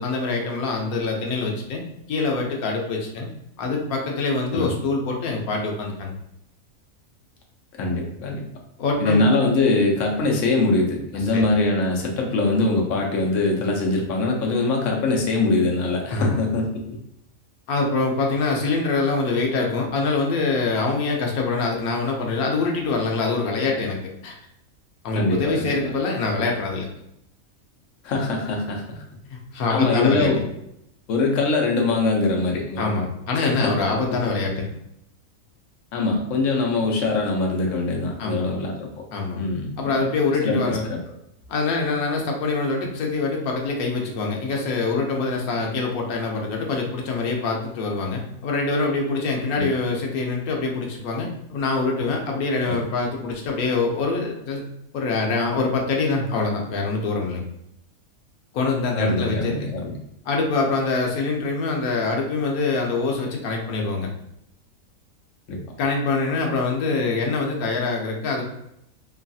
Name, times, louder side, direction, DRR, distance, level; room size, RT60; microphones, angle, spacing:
voice 1, 0.0-1.8 2.1-3.3 3.6-6.1 8.8-9.2 11.3-11.4 16.1-16.4 17.7-24.0 24.2-24.4 25.0-26.9 29.3-30.4 32.8-34.8 38.2-38.5 39.1-39.5 39.8-40.8 41.5-54.6 54.9-57.5 58.5-59.7 60.3-64.1 65.8-68.4, left 3 dB, 90° left, 0 dB, 1.1 m, -24 dB
voice 2, 7.8-8.4 9.0-16.7 25.1-25.8 28.0-28.8 29.7-30.4 31.1-32.9 33.3-34.2 35.9-38.9 39.4-40.0 40.4-41.0 49.6-49.7 52.7-52.8 58.9-59.9 65.5-65.6, left 3 dB, 65° left, 1 dB, 0.9 m, -23 dB
3.1 x 2.3 x 2.6 m, 0.79 s
omnidirectional pair, 1.5 m